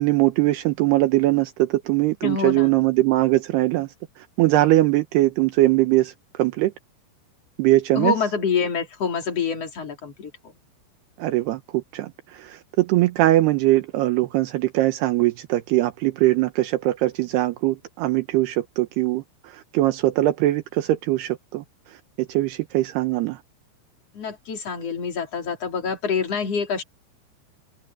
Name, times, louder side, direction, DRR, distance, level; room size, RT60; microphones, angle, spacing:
voice 1, 0.0-6.7 7.6-8.1 11.2-21.6 22.2-23.4, right 16 dB, 80° right, 2.4 m, -21 dB
voice 2, 2.2-2.8 7.9-10.3 24.1-26.8, left 5 dB, 35° left, 3.7 m, -26 dB
omnidirectional pair, 6.0 m